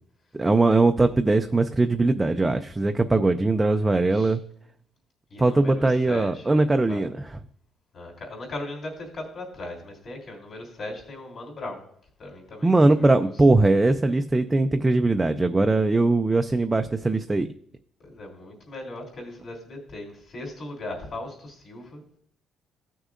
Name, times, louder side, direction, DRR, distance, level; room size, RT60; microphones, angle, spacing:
voice 1, 0.4-4.4 5.4-7.1 12.6-17.5, right 2 dB, 10° right, 7 dB, 0.3 m, -20 dB
voice 2, 5.3-7.0 7.9-11.8 12.2-13.3 18.0-22.0, left 2 dB, 40° left, -1 dB, 3.1 m, -38 dB
16.0 x 6.3 x 2.5 m, 0.63 s
cardioid pair, 165°, 0 cm